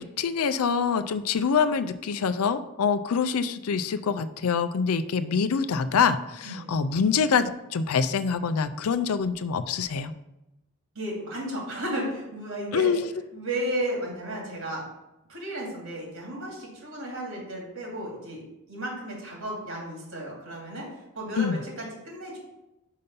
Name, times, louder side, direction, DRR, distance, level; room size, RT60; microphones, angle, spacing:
voice 1, 0.0-10.1 12.7-13.1 21.4-21.6, left 6 dB, 80° left, 12 dB, 0.4 m, -25 dB
voice 2, 10.9-12.9 13.3-14.8 15.3-18.4 18.7-20.9 21.1-22.4, right 1 dB, 65° right, -2 dB, 2.7 m, -33 dB
5.5 x 5.3 x 5.4 m, 0.94 s
head